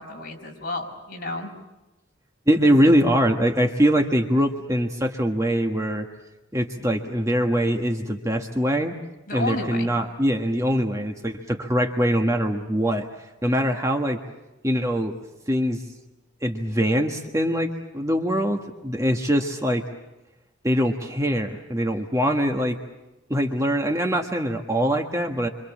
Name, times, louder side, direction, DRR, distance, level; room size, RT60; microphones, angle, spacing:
voice 1, 0.0-1.5 2.6-2.9 9.3-9.9, left 2 dB, 45° left, 1 dB, 5.9 m, -32 dB
voice 2, 2.5-6.1 6.5-8.9 9.3-13.1 13.4-14.2 14.6-15.1 15.5-15.8 16.4-19.8 20.6-22.8 23.3-25.5, equal, 15° right, 3 dB, 1.5 m, -23 dB
27.5 x 26.0 x 7.4 m, 1.0 s
head